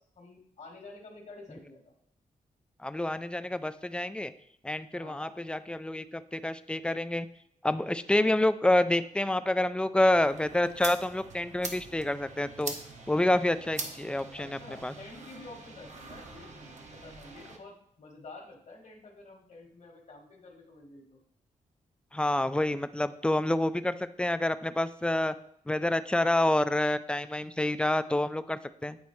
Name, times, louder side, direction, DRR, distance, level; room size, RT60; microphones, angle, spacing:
voice 1, 0.0-1.9 4.9-5.5 14.4-21.2, left 2 dB, 60° left, 1 dB, 1.6 m, -49 dB
voice 2, 2.8-4.3 4.6-7.3 7.6-12.7 13.1-14.9 22.1-25.3 25.7-29.0, left 1 dB, 5° left, 12 dB, 0.3 m, -28 dB
sound 1, 10.1-17.6, right 3 dB, 55° right, 1.0 m, -43 dB
8.6 x 4.1 x 3.1 m, 0.69 s
cardioid pair, 95°, 14 cm